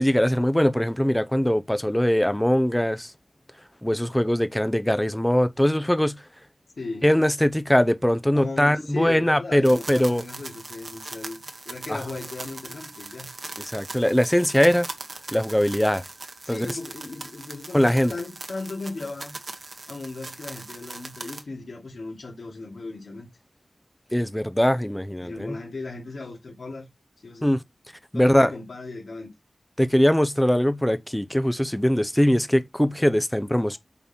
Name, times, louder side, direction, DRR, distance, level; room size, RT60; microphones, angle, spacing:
voice 1, 0.0-3.1 3.8-6.2 7.0-10.2 13.6-14.9 15.3-16.0 16.5-16.7 17.7-18.1 24.1-25.6 27.4-27.6 28.1-28.5 29.8-33.8, equal, 5° left, 0.7 m, -21 dB
voice 2, 6.8-7.1 8.3-11.4 11.6-13.3 16.4-19.3 19.9-23.3 25.2-26.9 27.2-27.5 28.1-29.3 33.7-33.8, left 3 dB, 80° left, 2.9 m, -36 dB
sound 1, 9.6-21.4, right 2 dB, 50° right, 1.3 m, -40 dB
7.0 x 4.1 x 4.5 m
wide cardioid pair, 95°, 0 cm